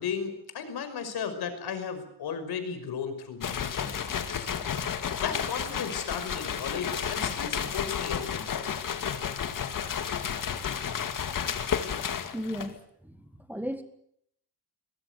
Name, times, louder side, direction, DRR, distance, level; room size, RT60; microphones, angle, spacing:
voice 1, 0.0-4.5 5.2-8.6, left 6 dB, 70° left, 9 dB, 5.7 m, -35 dB
sound 1, 3.4-12.8, left 8 dB, 50° left, 2.4 m, -32 dB
voice 2, 12.3-12.8 13.0-13.8, equal, 5° right, 8 dB, 1.6 m, -35 dB
23.0 x 20.5 x 8.3 m, 0.69 s
cardioid pair, 120°, 40 cm